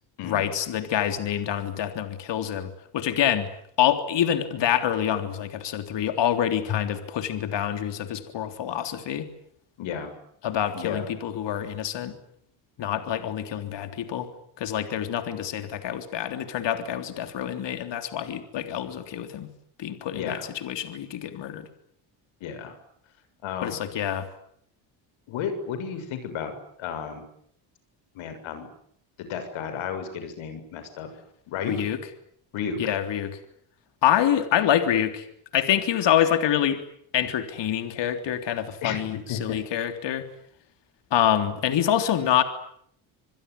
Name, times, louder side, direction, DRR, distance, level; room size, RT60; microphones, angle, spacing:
voice 1, 0.2-3.5 3.8-9.3 10.4-12.1 12.8-14.3 14.6-19.5 19.8-21.7 23.6-24.3 31.6-32.0 32.8-33.4 34.0-35.3 35.5-36.8 37.1-40.3 41.1-42.4, left 10 dB, 65° left, 8 dB, 3.6 m, -26 dB
voice 2, 9.8-10.1 10.7-11.1 20.1-20.5 22.4-22.8 23.4-23.8 25.3-26.5 26.8-27.3 28.1-28.7 29.2-31.1 31.5-31.8 32.5-32.8 38.8-39.6, left 7 dB, 80° left, 9 dB, 6.9 m, -33 dB
27.0 x 22.0 x 9.7 m, 0.68 s
cardioid pair, 105°, 47 cm